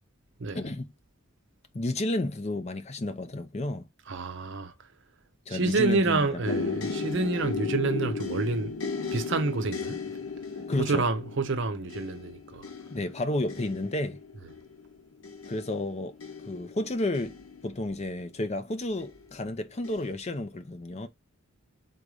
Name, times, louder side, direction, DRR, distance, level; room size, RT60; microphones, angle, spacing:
voice 1, 0.5-0.9 1.7-3.9 5.5-6.4 6.7-7.0 7.6-7.8 10.7-11.0 12.9-14.2 15.5-16.1 16.5-21.1, left 1 dB, 30° left, 0.5 m, -31 dB
voice 2, 4.1-4.7 5.5-8.7 9.1-10.0 10.8-12.6, right 3 dB, 55° right, 0.7 m, -28 dB
sound 1, 6.4-18.3 19.0-19.5 19.8-20.1, left 4 dB, 80° left, 0.9 m, -36 dB
3.9 x 2.6 x 4.7 m
head